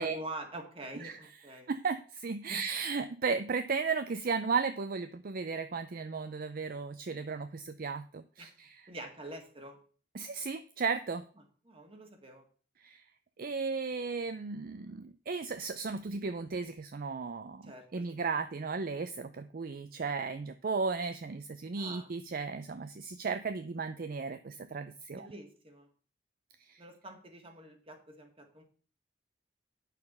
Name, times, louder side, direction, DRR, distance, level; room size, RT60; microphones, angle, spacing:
voice 1, 0.0-1.7 2.5-2.6 8.4-8.5 8.9-9.8 11.6-12.5 17.6-18.3 21.8-22.1 25.1-25.9 26.8-28.6, right 1 dB, 30° right, 4 dB, 2.0 m, -46 dB
voice 2, 1.7-8.8 10.1-11.2 12.8-13.0 13.4-25.3 26.7-26.8, right 4 dB, 55° right, 10 dB, 0.5 m, -35 dB
8.6 x 6.6 x 5.5 m, 0.41 s
head